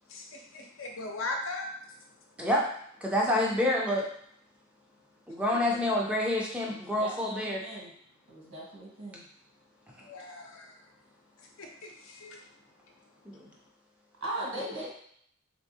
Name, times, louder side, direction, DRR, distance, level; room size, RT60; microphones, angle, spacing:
voice 1, 0.1-2.0 10.0-10.9 11.4-12.5, left 2 dB, 70° left, 2 dB, 0.7 m, -39 dB
voice 2, 3.0-4.1 5.3-7.6 13.3-13.4, left 1 dB, 5° right, -3 dB, 0.4 m, -27 dB
voice 3, 6.7-7.9 8.3-9.2 14.2-14.8, right 1 dB, 85° right, -4 dB, 1.4 m, -39 dB
3.5 x 3.3 x 2.7 m, 0.66 s
head